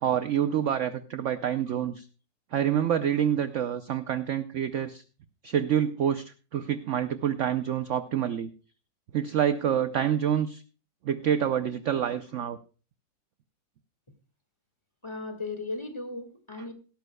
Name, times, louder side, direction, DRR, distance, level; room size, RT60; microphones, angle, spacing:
voice 1, 0.0-2.1 2.5-5.0 5.4-8.5 9.1-10.6 11.0-12.6, right 9 dB, 70° right, 11 dB, 0.7 m, -27 dB
voice 2, 15.0-16.7, left 3 dB, 15° left, 6 dB, 1.8 m, -36 dB
16.5 x 13.0 x 2.3 m, 0.35 s
omnidirectional pair, 2.0 m